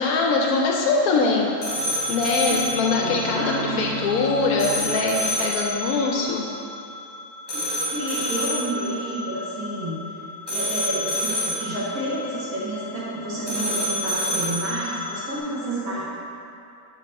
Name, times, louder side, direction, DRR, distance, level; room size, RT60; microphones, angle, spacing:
voice 1, 0.0-1.5 2.1-6.5, left 4 dB, 80° left, 0 dB, 1.0 m, -22 dB
sound 1, 1.0-15.4, equal, 20° left, 0.8 m, -29 dB
Bowed string instrument, 1.6-5.3, right 3 dB, 35° left, 1.5 m, -37 dB
voice 2, 3.0-3.9 7.5-9.9 10.5-16.0, right 1 dB, 75° right, -8 dB, 1.9 m, -30 dB
5.3 x 4.1 x 5.3 m, 2.7 s
omnidirectional pair, 1.5 m